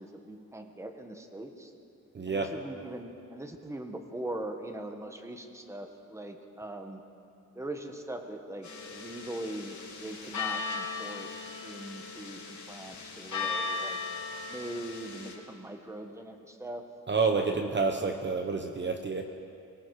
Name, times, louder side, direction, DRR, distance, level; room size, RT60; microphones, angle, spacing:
voice 1, 0.0-1.7 2.2-7.0 7.5-11.3 11.6-14.0 14.5-16.8 17.3-17.6, right 1 dB, 10° right, 5 dB, 1.4 m, -41 dB
voice 2, 2.1-2.5 17.1-19.2, right 4 dB, 35° right, 5 dB, 1.0 m, -28 dB
sound 1, 8.6-15.3, left 4 dB, 70° left, 3.7 m, -37 dB
23.5 x 23.0 x 4.9 m, 2.6 s
wide cardioid pair, 140°, 31 cm